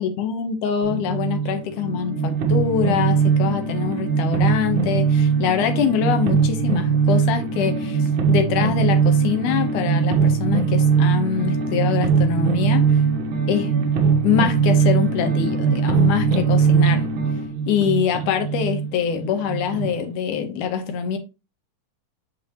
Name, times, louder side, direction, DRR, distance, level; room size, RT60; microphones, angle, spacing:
voice 1, 0.0-13.0 13.5-13.7 14.2-17.1 17.7-21.2, left 7 dB, 70° left, 2.4 m, -24 dB
sound 1, 0.8-19.9, right 6 dB, 70° right, 2.2 m, -21 dB
8.9 x 5.5 x 2.9 m
omnidirectional pair, 3.9 m